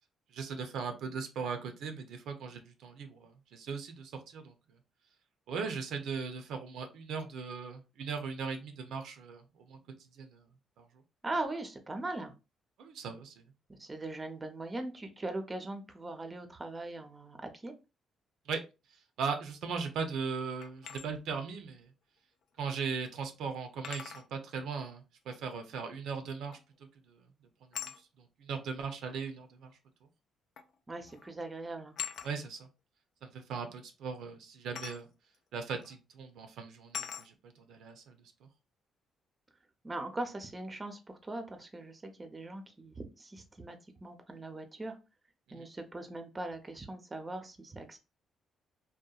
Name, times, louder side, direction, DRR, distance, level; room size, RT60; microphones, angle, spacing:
voice 1, 0.3-4.5 5.5-9.4 9.7-9.8 10.2-10.3 10.8-10.9 12.8-13.3 18.5-18.6 19.2-21.8 22.6-26.6 28.4-29.7 32.2-32.7 33.2-35.1 35.5-37.3 37.7-38.1 45.5-45.6, right 5 dB, 80° right, 6 dB, 0.5 m, -38 dB
voice 2, 11.2-12.3 13.7-17.7 30.9-31.9 39.8-43.8 44.0-45.0 45.5-48.0, right 2 dB, 25° right, 7 dB, 0.5 m, -40 dB
sound 1, 20.6-21.1 22.6-22.7 23.8-24.3 26.5-26.8 27.7-28.0 29.2-29.3 30.6-30.8 31.1-31.3 32.0-32.3 34.7-35.0 35.8-36.0 36.9-37.3, left 7 dB, 70° left, 0.3 m, -41 dB
2.7 x 2.1 x 2.3 m, 0.28 s
cardioid pair, 90°, 0 cm